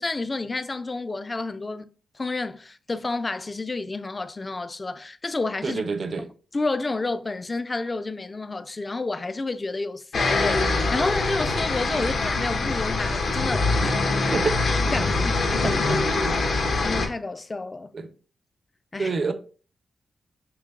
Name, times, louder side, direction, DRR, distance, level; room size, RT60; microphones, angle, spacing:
voice 1, 0.0-5.8 6.2-6.3 6.5-14.0 14.9-15.8 16.8-17.9 18.9-19.1, left 3 dB, 30° left, 0.3 m, -30 dB
voice 2, 5.6-6.3 11.9-12.2 14.3-14.5 15.2-15.3 15.6-16.0 17.9-18.1 19.0-19.3, right 4 dB, 55° right, 0.5 m, -28 dB
sound 1, 10.1-17.1, left 3 dB, 75° left, 0.9 m, -24 dB
5.8 x 3.3 x 2.3 m
cardioid pair, 65°, 0 cm